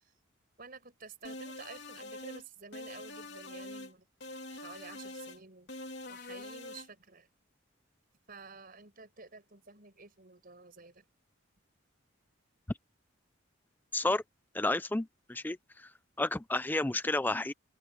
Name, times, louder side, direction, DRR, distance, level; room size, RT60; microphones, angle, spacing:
voice 1, 0.6-4.0 4.5-5.7 6.1-7.3 8.3-11.0, right 4 dB, 45° right, 5.3 m, -51 dB
sound 1, 1.2-2.4 2.7-3.9 4.2-5.4 5.7-6.9, left 2 dB, 55° left, 3.2 m, -44 dB
voice 2, 13.9-14.2 14.5-15.9 16.2-17.5, left 2 dB, 10° left, 0.4 m, -31 dB
head